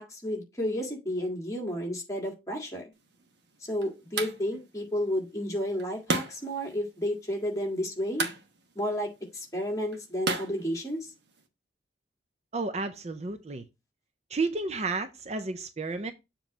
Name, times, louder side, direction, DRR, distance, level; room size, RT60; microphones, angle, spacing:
voice 1, 0.0-2.9 3.7-8.3 8.7-11.1, equal, 15° left, 1.7 m, -32 dB
sound 1, 2.9-11.5, right 3 dB, 65° right, 1.1 m, -37 dB
voice 2, 12.5-13.6 14.3-16.1, right 3 dB, 35° right, 0.5 m, -32 dB
7.2 x 3.0 x 5.4 m
head